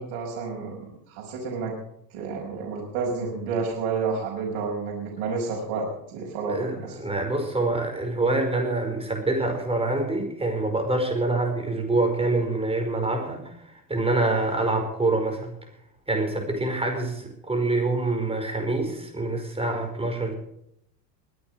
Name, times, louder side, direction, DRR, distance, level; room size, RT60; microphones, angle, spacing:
voice 1, 0.0-1.7 2.1-7.0, right 4 dB, 65° right, -1 dB, 5.6 m, -30 dB
voice 2, 6.5-13.4 13.9-15.5 16.1-20.3, right 2 dB, 10° right, 3 dB, 5.0 m, -26 dB
21.5 x 8.7 x 6.3 m, 0.73 s
supercardioid pair, 115°, 49 cm